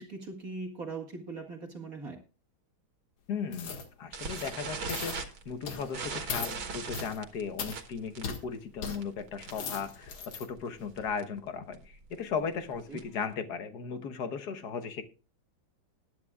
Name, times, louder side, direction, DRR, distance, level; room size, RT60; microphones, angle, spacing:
voice 1, 0.0-2.2 12.9-13.0, right 3 dB, 45° right, 1 dB, 2.2 m, -40 dB
voice 2, 3.3-15.0, left 6 dB, 55° left, 10 dB, 1.5 m, -37 dB
sound 1, 3.5-3.9 4.2-4.6 4.9-5.2 5.7-5.9 6.3-6.5 6.9-7.2 7.6-7.8 8.2-8.4 8.8-9.0 9.4-10.5 10.9-11.0, left 5 dB, 85° left, 2.5 m, -38 dB
sound 2, 4.1-9.8 10.0-10.3 10.6-10.7 11.0-11.2 11.7-13.3, right 5 dB, 75° right, 2.2 m, -40 dB
20.0 x 9.9 x 2.3 m, 0.35 s
omnidirectional pair, 2.2 m